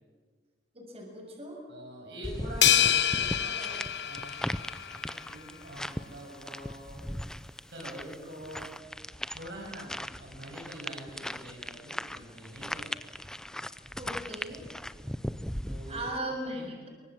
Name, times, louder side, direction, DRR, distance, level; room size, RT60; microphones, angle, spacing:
voice 1, 0.7-1.6 14.0-14.6 15.9-16.9, right 1 dB, 35° right, 1 dB, 6.7 m, -38 dB
voice 2, 1.7-4.4 4.8-7.0 7.7-8.8 9.3-13.0 15.6-16.9, equal, 80° right, -2 dB, 6.6 m, -45 dB
sound 1, 2.2-16.2, equal, 5° left, 0.7 m, -39 dB
sound 2, 2.6-5.1, left 10 dB, 70° left, 1.1 m, -26 dB
27.0 x 24.0 x 7.6 m, 1.5 s
head